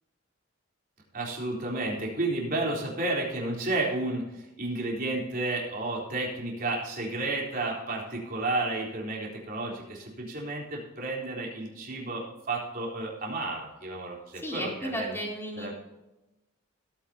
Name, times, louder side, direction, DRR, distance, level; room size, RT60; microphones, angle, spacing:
voice 1, 1.1-15.2 15.6-15.7, right 2 dB, 45° right, -2 dB, 3.9 m, -32 dB
voice 2, 14.4-15.7, equal, 10° left, -2 dB, 3.4 m, -34 dB
17.0 x 9.1 x 2.9 m, 0.97 s
head